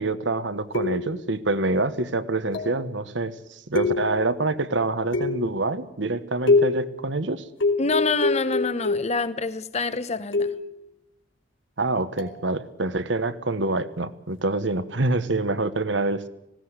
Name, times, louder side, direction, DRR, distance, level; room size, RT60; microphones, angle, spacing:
voice 1, 0.0-7.4 11.8-16.3, right 2 dB, 65° right, 1.3 m, -26 dB
sound 1, 0.7-1.3 2.5-2.9 3.7-4.4 5.1-5.6 6.5-6.9 7.6-9.2 10.3-10.7 12.2-12.4, left 3 dB, 85° left, 3.1 m, -24 dB
voice 2, 7.8-10.5, left 4 dB, 35° left, 1.0 m, -26 dB
19.5 x 17.5 x 8.1 m
head